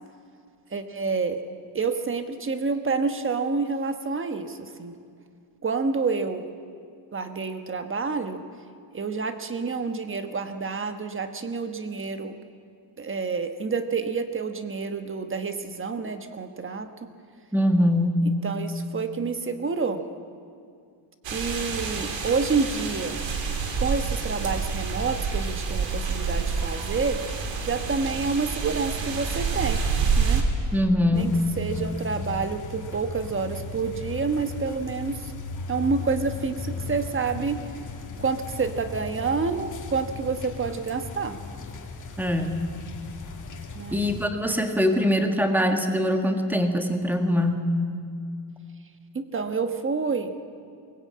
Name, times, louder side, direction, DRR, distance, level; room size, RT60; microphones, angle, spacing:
voice 1, 0.7-1.4 1.7-4.9 5.6-6.5 7.1-8.4 8.9-12.4 13.0-17.1 18.2-20.0 21.3-23.2 23.8-29.8 30.2-30.5 31.1-35.3 35.7-37.6 38.2-41.4 43.7-44.0 49.1-50.4, right 4 dB, 30° right, 8 dB, 1.2 m, -28 dB
voice 2, 17.5-18.3 30.7-31.4 42.2-42.6 43.9-47.7, left 1 dB, 5° right, 5 dB, 1.6 m, -23 dB
sound 1, 21.2-30.4, right 5 dB, 80° right, 3.1 m, -28 dB
sound 2, 31.1-44.3, left 4 dB, 40° left, 2.2 m, -37 dB
22.5 x 20.0 x 8.6 m, 2.3 s
wide cardioid pair, 160°, 44 cm